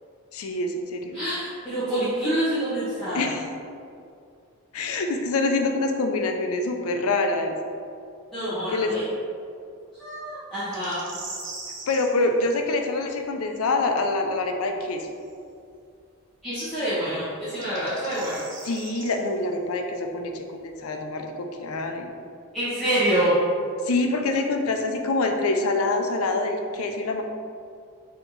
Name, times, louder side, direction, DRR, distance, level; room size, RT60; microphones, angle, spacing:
voice 1, 0.3-1.2 3.1-3.4 4.7-7.6 8.7-8.9 11.9-15.1 18.6-22.1 23.8-27.2, left 2 dB, 80° left, 4 dB, 0.5 m, -25 dB
voice 2, 1.1-3.3 8.3-9.0 10.0-11.0 16.4-18.4 22.5-23.4, right 1 dB, ahead, -16 dB, 1.0 m, -26 dB
sound 1, 10.7-12.1 15.2-15.3 17.4-19.2, right 3 dB, 55° right, 0.7 m, -39 dB
4.3 x 2.8 x 3.9 m, 2.4 s
head